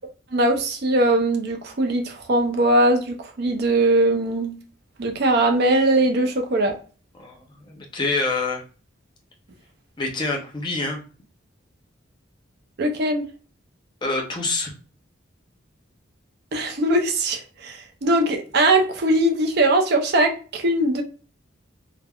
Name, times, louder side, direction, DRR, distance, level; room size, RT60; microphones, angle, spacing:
voice 1, 0.3-4.6 5.0-6.8 12.8-13.3 16.5-21.0, right 1 dB, 50° right, 3 dB, 0.5 m, -20 dB
voice 2, 7.6-8.6 10.0-11.0 14.0-14.7, left 3 dB, 20° left, 0 dB, 0.6 m, -26 dB
3.2 x 2.1 x 2.2 m, 0.37 s
head